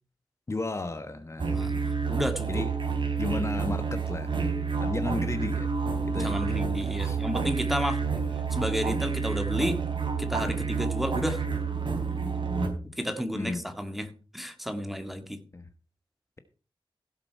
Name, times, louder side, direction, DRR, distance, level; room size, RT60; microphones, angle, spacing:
voice 1, 0.5-1.6 2.5-2.7 3.2-4.4 4.8-5.7 6.1-6.6 7.0-7.2 10.4-10.6 13.3-13.6 15.5-15.6, left 2 dB, 30° left, 8 dB, 1.1 m, -34 dB
sound 1, 1.4-12.7, right 5 dB, 60° right, 3.8 m, -29 dB
voice 2, 1.5-2.6 6.1-8.0 8.5-9.8 10.2-11.4 13.0-15.4, equal, ahead, 6 dB, 1.9 m, -32 dB
16.5 x 7.6 x 4.6 m, 0.37 s
wide cardioid pair, 110°, 9 cm